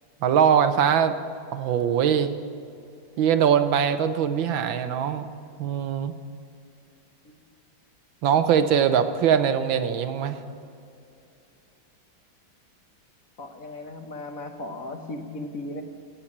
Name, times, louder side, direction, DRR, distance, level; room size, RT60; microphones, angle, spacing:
voice 1, 0.2-1.1 1.5-2.3 3.2-5.3 5.6-6.1 8.2-10.4, right 8 dB, 75° right, 9 dB, 1.5 m, -22 dB
voice 2, 13.4-15.8, left 2 dB, 50° left, 4 dB, 1.3 m, -36 dB
16.0 x 8.3 x 7.2 m, 2.6 s
omnidirectional pair, 2.2 m